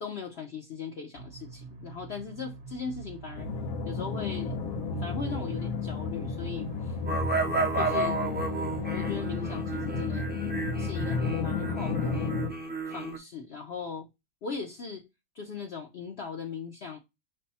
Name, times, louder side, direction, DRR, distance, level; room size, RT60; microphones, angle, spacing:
voice 1, 0.0-3.5 3.8-4.6 5.0-7.0 7.7-8.2 8.9-10.4 10.8-12.3 12.9-14.1 14.4-15.0 15.3-17.0, left 5 dB, 55° left, 0.9 m, -38 dB
sound 1, 1.1-9.6, right 4 dB, 50° right, 1.0 m, -45 dB
sound 2, 3.4-12.5, left 4 dB, 75° left, 1.2 m, -32 dB
sound 3, 7.1-13.2, right 3 dB, 10° right, 0.5 m, -32 dB
5.4 x 2.2 x 4.1 m
omnidirectional pair, 1.5 m